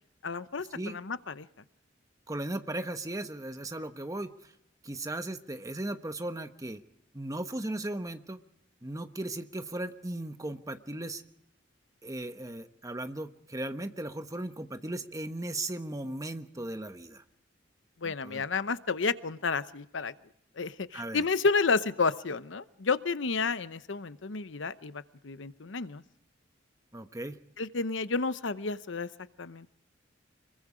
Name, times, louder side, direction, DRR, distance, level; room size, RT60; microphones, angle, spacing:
voice 1, 0.2-1.5 18.0-20.1 20.6-26.0 27.6-29.1 29.4-29.7, left 4 dB, 80° left, 14 dB, 0.8 m, -31 dB
voice 2, 2.3-4.3 4.8-6.8 7.1-8.4 8.8-11.2 12.0-17.2 18.0-18.4 20.9-21.2 26.9-27.4, right 1 dB, 20° right, 8 dB, 1.1 m, -37 dB
25.5 x 22.0 x 5.0 m, 0.75 s
head